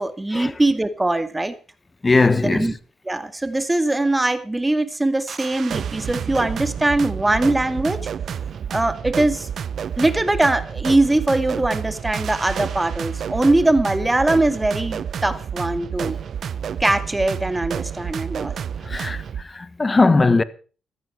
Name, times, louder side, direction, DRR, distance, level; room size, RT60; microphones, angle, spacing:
voice 1, 0.0-1.6 2.4-2.7 3.1-8.0 8.7-9.5 10.0-16.2 16.8-18.6, right 2 dB, 15° right, 2.3 m, -21 dB
voice 2, 2.0-2.7 18.8-20.4, left 3 dB, 30° left, 1.5 m, -19 dB
sound 1, 5.3-19.4, right 8 dB, 60° right, 0.7 m, -30 dB
15.5 x 13.5 x 4.6 m
hypercardioid pair, 50°, 0 cm